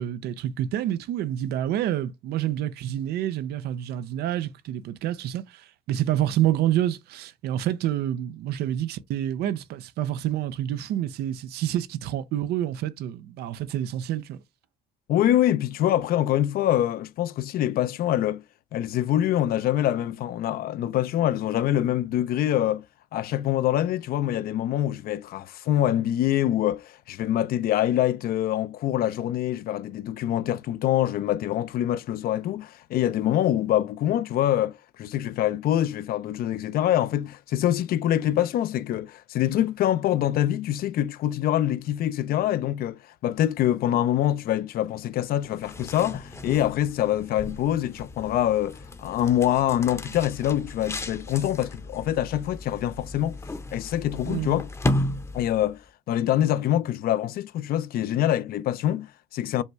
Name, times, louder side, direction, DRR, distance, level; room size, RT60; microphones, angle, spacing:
voice 1, 0.0-14.4 54.3-54.6, right 12 dB, 75° right, 0.5 m, -28 dB
voice 2, 15.1-18.4 18.7-22.8 23.1-53.4 53.7-54.7 55.3-55.8 56.1-59.6, left 12 dB, 60° left, 0.5 m, -25 dB
sound 1, 45.4-55.8, left 1 dB, 15° left, 0.7 m, -34 dB
5.3 x 2.3 x 3.0 m
cardioid pair, 110°, 17 cm